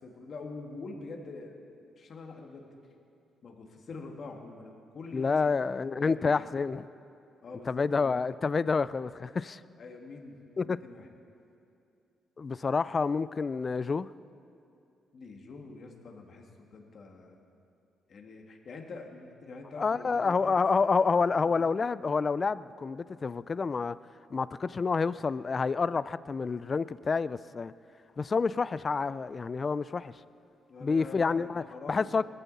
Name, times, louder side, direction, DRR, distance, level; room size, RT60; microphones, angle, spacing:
voice 1, 0.0-1.6 2.0-2.7 3.4-5.5 6.0-6.5 7.4-8.2 9.8-10.4 10.6-11.1 15.1-17.4 18.1-20.6 21.3-21.7 30.7-32.3, left 3 dB, 50° left, 2.0 m, -45 dB
voice 2, 5.1-6.9 7.7-9.6 10.6-10.8 12.4-14.1 19.8-24.0 24.3-27.7 28.2-30.1 30.8-31.6 31.9-32.2, left 4 dB, 35° left, 0.3 m, -28 dB
20.0 x 14.0 x 4.2 m
cardioid pair, 90°, 0 cm